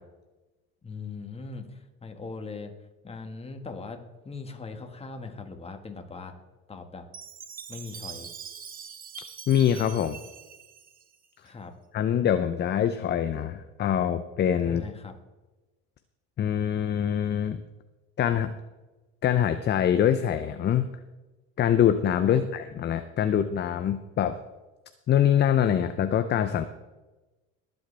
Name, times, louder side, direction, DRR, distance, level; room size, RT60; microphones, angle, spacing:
voice 1, 0.8-2.7 3.0-6.4 6.7-7.1 7.7-8.3 11.4-11.7 14.6-15.2 22.2-22.4, left 4 dB, 20° left, 5 dB, 1.7 m, -40 dB
Chime, 7.1-11.5, right 7 dB, 30° right, 0.9 m, -43 dB
voice 2, 9.5-10.2 11.9-14.8 16.4-17.6 18.2-18.5 19.2-20.9 21.6-24.4 25.1-26.7, left 9 dB, 35° left, 10 dB, 0.6 m, -24 dB
22.5 x 7.9 x 3.4 m, 1.1 s
supercardioid pair, 110°, 31 cm